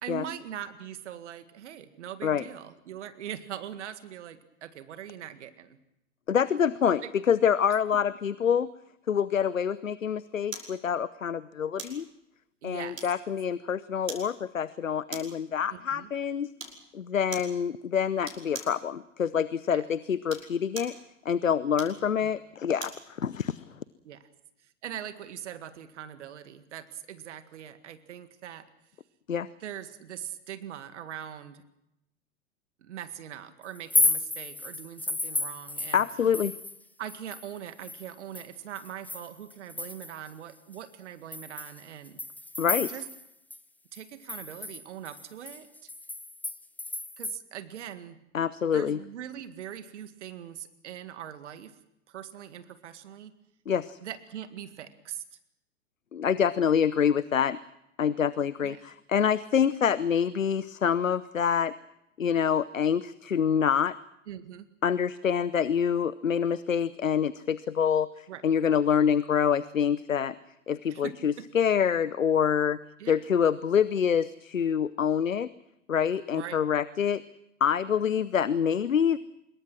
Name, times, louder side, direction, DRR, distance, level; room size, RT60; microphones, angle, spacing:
voice 1, 0.0-5.8 7.0-7.1 12.6-13.0 15.7-16.1 19.7-19.8 22.2-22.3 24.0-24.3 24.6-28.7 29.6-31.6 32.8-36.4 37.0-42.2 42.9-43.1 43.9-45.9 47.2-48.2 48.7-51.8 52.1-53.3 54.0-55.2 58.6-58.9 64.3-64.7 68.3-68.4 70.9-71.2 73.0-73.2 76.3-76.6, right 10 dB, 65° right, 10 dB, 2.0 m, -41 dB
voice 2, 6.3-8.7 9.1-12.1 12.6-16.5 16.9-21.0 21.2-23.6 29.3-29.5 35.9-36.5 42.6-42.9 48.3-49.0 53.7-54.0 56.1-57.6 58.0-61.7 62.2-64.0 64.8-70.3 70.7-72.8 73.1-75.5 75.9-77.2 77.6-79.2, left 7 dB, 85° left, 18 dB, 0.8 m, -26 dB
sound 1, 10.5-10.8 11.8-12.0 13.0-13.4 14.1-14.3 15.1-15.4 16.6-16.8 17.3-17.6 18.2-18.8 20.1-21.0 21.7-23.0 23.5-23.6, right 3 dB, 85° right, 5.6 m, -41 dB
sound 2, 33.7-36.8 37.1-40.3 40.7-40.8 41.3-43.3 43.5-43.6 43.9-47.4, left 2 dB, 5° left, 0.9 m, -32 dB
25.5 x 22.5 x 6.2 m, 0.82 s
figure-of-eight pair, 95°, 38 cm